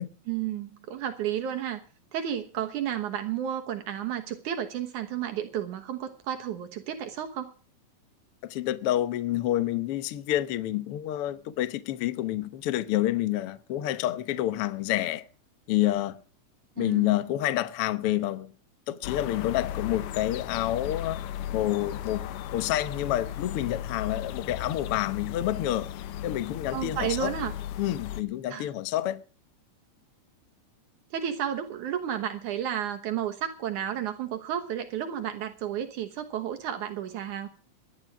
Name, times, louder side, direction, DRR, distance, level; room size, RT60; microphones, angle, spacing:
voice 1, 0.3-1.8 2.1-7.5 16.8-17.1 26.7-27.5 28.5-28.7 31.1-37.5, right 10 dB, 70° right, 2.6 m, -32 dB
voice 2, 8.4-15.2 15.7-16.2 16.8-18.5 18.9-21.2 21.5-22.3 22.5-25.9 26.2-27.3 27.8-29.2, left 14 dB, 65° left, 1.5 m, -28 dB
sound 1, 19.0-28.2, left 11 dB, 80° left, 2.5 m, -36 dB
18.0 x 12.0 x 4.7 m
omnidirectional pair, 3.7 m